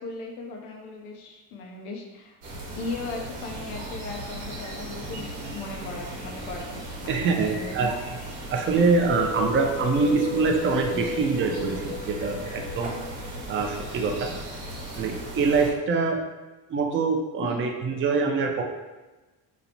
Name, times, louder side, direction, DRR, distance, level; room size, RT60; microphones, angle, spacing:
voice 1, 0.0-2.4 2.8-7.9 12.4-12.5 17.4-17.7, left 3 dB, 90° left, 1 dB, 0.6 m, -37 dB
sound 1, 2.4-15.7, right 1 dB, 85° right, 0.9 m, -37 dB
voice 2, 7.1-8.1 8.5-12.9 13.5-14.3 15.0-16.2 16.7-18.6, right 4 dB, 30° right, 3 dB, 0.3 m, -24 dB
sound 2, 9.0-14.2, left 4 dB, 20° left, 0.5 m, -35 dB
2.9 x 2.1 x 2.7 m, 1.2 s
supercardioid pair, 80°, 46 cm